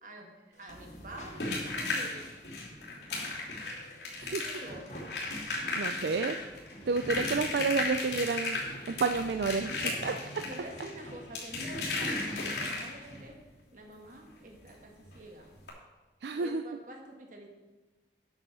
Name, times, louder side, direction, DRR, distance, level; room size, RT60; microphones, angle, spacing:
voice 1, 0.0-2.3 4.3-4.9 9.0-9.5 9.8-13.4 13.7-15.5 16.3-17.5, right 1 dB, 45° right, 1 dB, 1.6 m, -47 dB
sound 1, 0.5-13.3, equal, 40° left, 1.5 m, -50 dB
sound 2, 0.7-13.2 14.7-14.8 15.0-15.2 15.6-15.7, left 3 dB, 80° left, 3.0 m, -35 dB
voice 2, 5.8-6.4 6.9-8.6 8.9-9.7 10.0-10.1 16.2-16.6, right 4 dB, 70° right, 8 dB, 0.4 m, -30 dB
8.9 x 6.2 x 6.8 m, 1.2 s
head